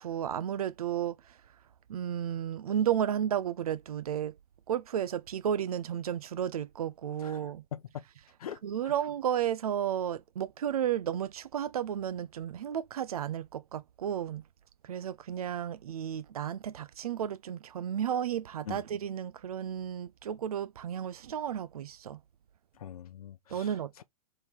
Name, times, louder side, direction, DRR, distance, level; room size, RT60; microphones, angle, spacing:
voice 1, 0.0-1.4 1.9-4.3 4.7-7.6 8.6-14.4 14.8-22.2 23.5-24.0, right 9 dB, 80° right, 0.6 m, -33 dB
voice 2, 7.7-8.0 8.4-8.9 18.6-18.8 22.7-23.7, left 9 dB, 80° left, 0.7 m, -42 dB
3.6 x 3.2 x 4.4 m
hypercardioid pair, 125°, 19 cm